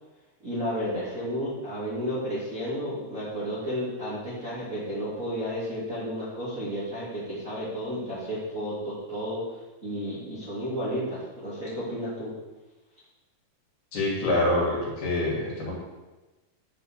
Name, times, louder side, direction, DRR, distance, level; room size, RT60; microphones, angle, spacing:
voice 1, 0.4-12.3, equal, 20° right, -10 dB, 3.0 m, -32 dB
voice 2, 13.9-15.7, left 1 dB, 65° left, -5 dB, 4.6 m, -26 dB
10.0 x 5.9 x 6.5 m, 1.1 s
omnidirectional pair, 4.8 m